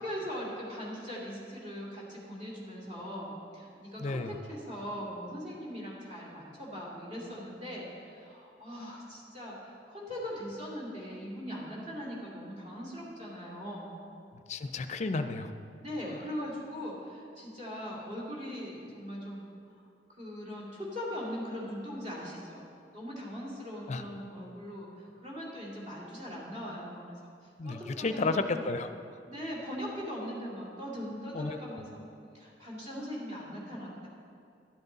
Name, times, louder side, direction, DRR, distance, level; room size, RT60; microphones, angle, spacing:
voice 1, 0.0-14.0 15.8-19.4 20.1-22.6 22.9-27.3 27.6-28.6 29.3-32.0 32.3-34.1, equal, 45° right, -5 dB, 2.6 m, -40 dB
voice 2, 4.0-4.3 14.5-15.5 23.9-24.0 27.6-28.9 31.3-31.8, left 3 dB, 40° left, 9 dB, 0.5 m, -32 dB
12.0 x 8.1 x 4.0 m, 2.5 s
head